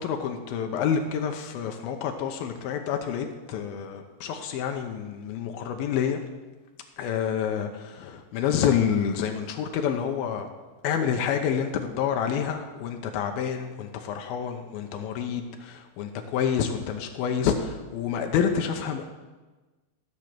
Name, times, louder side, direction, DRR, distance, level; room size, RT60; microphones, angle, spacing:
voice 1, 0.0-6.2 7.0-10.5 10.8-19.0, left 8 dB, 90° left, 4 dB, 2.7 m, -28 dB
15.0 x 6.6 x 7.5 m, 1.2 s
omnidirectional pair, 4.2 m